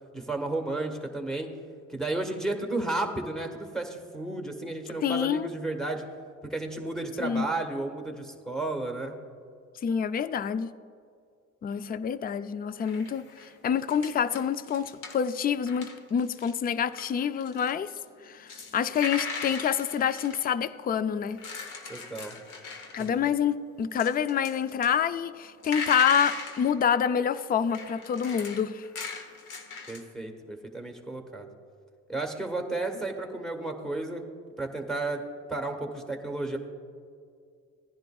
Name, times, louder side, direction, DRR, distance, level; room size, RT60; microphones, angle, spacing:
voice 1, 0.1-1.5 1.9-6.1 6.4-9.1 21.9-22.3 23.0-23.2 29.9-31.5 32.1-34.2 34.6-35.2 35.5-36.6, right 2 dB, ahead, 3 dB, 1.4 m, -33 dB
voice 2, 5.0-5.5 7.2-7.5 9.8-10.7 11.6-17.9 18.2-21.4 22.9-28.9, left 8 dB, 30° left, 14 dB, 0.4 m, -27 dB
sound 1, 12.8-16.5 16.9-20.5 21.2-23.5 23.9-24.9 25.3-26.7 27.7-30.0, left 4 dB, 90° left, 1.2 m, -39 dB
16.5 x 10.5 x 2.3 m, 2.3 s
cardioid pair, 90°, 30 cm